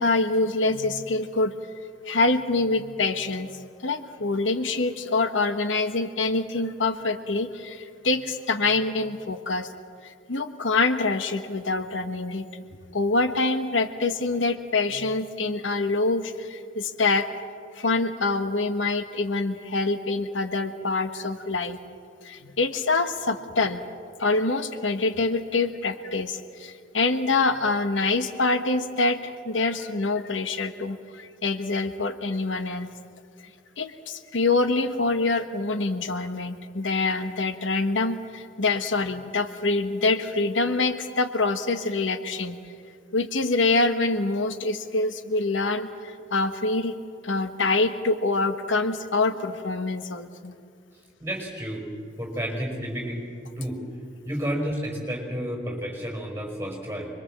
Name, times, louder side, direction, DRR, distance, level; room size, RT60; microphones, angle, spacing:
voice 1, 0.0-1.5 2.0-9.7 10.0-12.5 12.9-17.3 17.7-21.8 22.2-23.8 24.2-32.9 33.8-42.6 43.1-47.0 47.2-50.5, left 3 dB, 80° left, 9 dB, 1.3 m, -25 dB
voice 2, 51.2-51.9 52.2-53.2 53.6-53.8 54.3-57.1, equal, 10° right, 0 dB, 5.2 m, -31 dB
25.5 x 22.5 x 7.5 m, 2.2 s
head